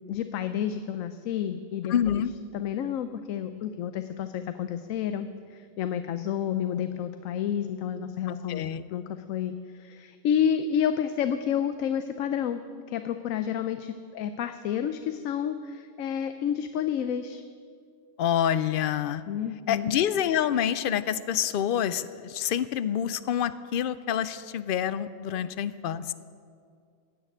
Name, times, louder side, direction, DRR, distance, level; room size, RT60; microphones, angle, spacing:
voice 1, 0.0-2.2 2.5-8.6 8.9-9.0 9.3-12.6 12.9-17.4 19.3-19.8 25.3-25.6, left 9 dB, 80° left, 9 dB, 1.0 m, -30 dB
voice 2, 1.9-2.3 8.5-8.8 18.2-19.2 19.7-26.1, left 9 dB, 65° left, 15 dB, 0.5 m, -27 dB
15.5 x 6.6 x 9.1 m, 2.2 s
omnidirectional pair, 1.4 m